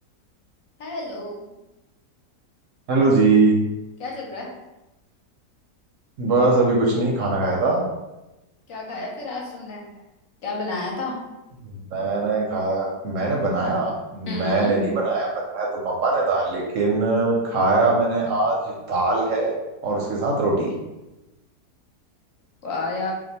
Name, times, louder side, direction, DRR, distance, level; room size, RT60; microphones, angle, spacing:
voice 1, 0.8-1.4 4.0-4.5 8.7-9.9 10.4-11.2 14.3-14.8 22.6-23.1, left 3 dB, 65° left, -2 dB, 1.0 m, -31 dB
voice 2, 2.9-3.6 6.2-7.8 11.9-15.3 15.5-19.5 19.8-20.7, right 3 dB, 65° right, -2 dB, 0.8 m, -21 dB
2.6 x 2.2 x 4.0 m, 1.0 s
omnidirectional pair, 1.7 m